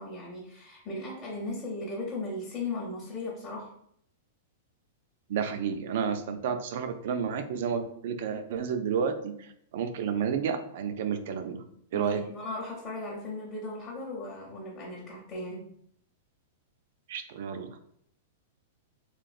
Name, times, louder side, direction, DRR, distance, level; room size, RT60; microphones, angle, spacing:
voice 1, 0.0-3.7 8.3-8.4 11.9-15.7, left 2 dB, 20° left, -5 dB, 0.6 m, -37 dB
voice 2, 5.3-11.6 11.9-12.2 17.1-17.8, right 7 dB, 55° right, 8 dB, 0.3 m, -31 dB
3.1 x 2.3 x 2.4 m, 0.67 s
supercardioid pair, 160°, 0 cm